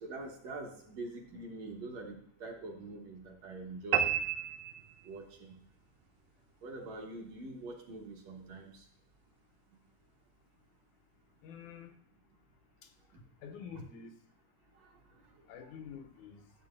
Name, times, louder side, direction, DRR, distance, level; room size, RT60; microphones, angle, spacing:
voice 1, 0.0-4.1 5.1-5.5 6.6-8.8 13.1-13.2 13.7-13.8, right 2 dB, 60° right, 0 dB, 2.2 m, -44 dB
sound 1, 3.9-5.5, right 9 dB, 85° right, 2.1 m, -32 dB
voice 2, 11.4-12.0 13.4-14.1 15.5-16.5, left 7 dB, 75° left, 6 dB, 2.1 m, -47 dB
12.5 x 7.7 x 2.6 m, 0.66 s
omnidirectional pair, 3.6 m